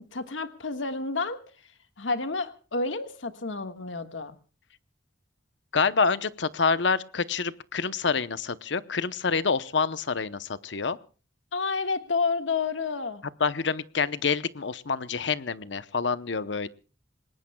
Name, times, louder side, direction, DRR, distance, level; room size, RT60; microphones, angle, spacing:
voice 1, 0.0-1.4 2.0-4.3 11.5-13.2, left 4 dB, 90° left, 9 dB, 1.6 m, -30 dB
voice 2, 5.7-11.0 13.4-16.7, left 5 dB, 65° left, 15 dB, 0.8 m, -27 dB
27.0 x 20.0 x 2.3 m, 0.36 s
head